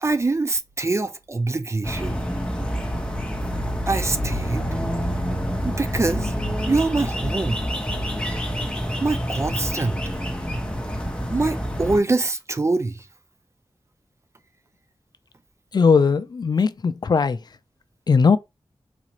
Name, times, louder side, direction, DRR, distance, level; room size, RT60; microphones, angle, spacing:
voice 1, 0.0-2.2 3.9-4.6 5.6-6.3 6.7-7.6 9.0-10.0 11.3-13.1, right 3 dB, 30° right, 0.4 m, -24 dB
sound 1, 1.8-12.0, equal, 10° left, 0.9 m, -27 dB
voice 2, 15.7-17.4 18.1-18.4, left 5 dB, 50° left, 0.3 m, -18 dB
4.1 x 2.4 x 2.9 m
wide cardioid pair, 75°, 9 cm